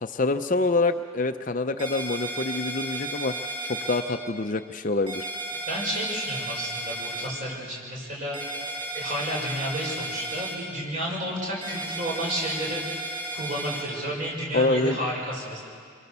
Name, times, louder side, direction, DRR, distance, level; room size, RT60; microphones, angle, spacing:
voice 1, 0.0-3.3 3.6-5.3 14.5-15.0, left 3 dB, 40° left, 8 dB, 0.6 m, -26 dB
sound 1, 1.8-4.0 5.1-7.3 8.3-10.5 11.6-13.8, right 2 dB, 20° right, 6.3 m, -34 dB
voice 2, 5.7-8.4 8.9-12.8 13.3-15.6, equal, 40° right, -3 dB, 6.1 m, -31 dB
26.5 x 23.5 x 6.8 m, 2.2 s
head